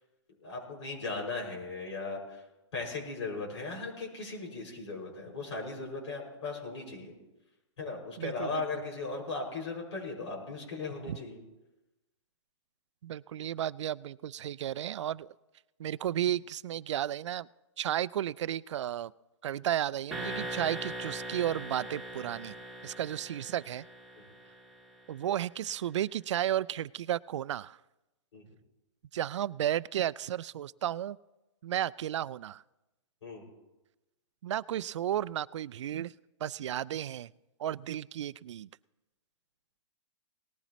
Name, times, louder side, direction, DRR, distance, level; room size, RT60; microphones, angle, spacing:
voice 1, 0.4-2.4 2.7-7.1 7.8-11.4 24.2-24.3 28.3-28.4 33.2-33.4, left 3 dB, 75° left, -1 dB, 6.1 m, -37 dB
voice 2, 8.2-8.6 11.1-11.2 13.0-15.3 15.8-17.5 17.8-19.1 19.4-22.6 22.8-23.8 25.1-27.8 29.1-31.2 31.6-32.6 34.4-36.1 36.4-37.3 37.6-38.7, right 11 dB, 75° right, 21 dB, 0.4 m, -33 dB
sound 1, 20.1-25.0, right 1 dB, ahead, 2.2 m, -41 dB
19.0 x 14.5 x 3.1 m, 1.0 s
hypercardioid pair, 160°, 15 cm